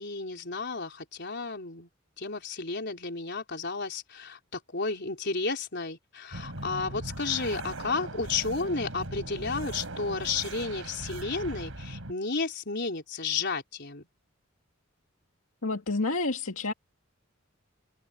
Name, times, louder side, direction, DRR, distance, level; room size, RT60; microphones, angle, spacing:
voice 1, 0.0-1.9 2.2-14.1, left 4 dB, 55° left, 4.3 m, -32 dB
sound 1, 6.3-12.1, right 2 dB, 75° right, 4.2 m, -39 dB
voice 2, 15.6-16.7, left 3 dB, 80° left, 2.1 m, -29 dB
head